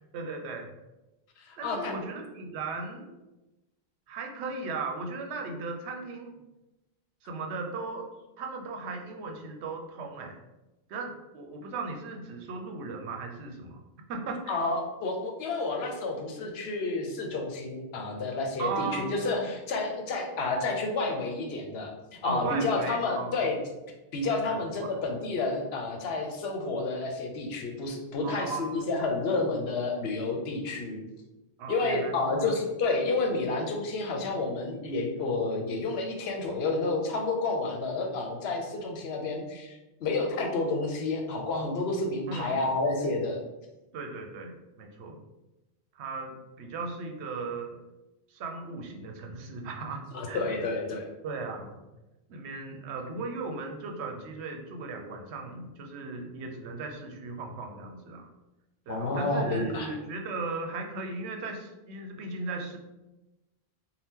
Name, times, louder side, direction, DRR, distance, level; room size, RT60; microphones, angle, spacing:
voice 1, 0.1-0.7 1.6-3.1 4.1-6.4 7.2-8.1 8.4-10.4 10.9-13.8 14.1-14.6 18.6-19.5 22.2-23.5 24.4-24.9 28.2-28.9 31.6-32.6 42.3-42.7 43.9-45.2 45.9-47.8 48.3-50.6 51.2-51.8 52.3-58.3 58.9-62.8, right 3 dB, 85° right, 3 dB, 0.8 m, -37 dB
voice 2, 1.4-2.0 14.5-23.6 24.1-31.0 31.7-43.4 50.1-51.1 58.9-59.9, left 3 dB, 75° left, 2 dB, 0.8 m, -30 dB
2.8 x 2.2 x 3.4 m, 1.0 s
omnidirectional pair, 1.1 m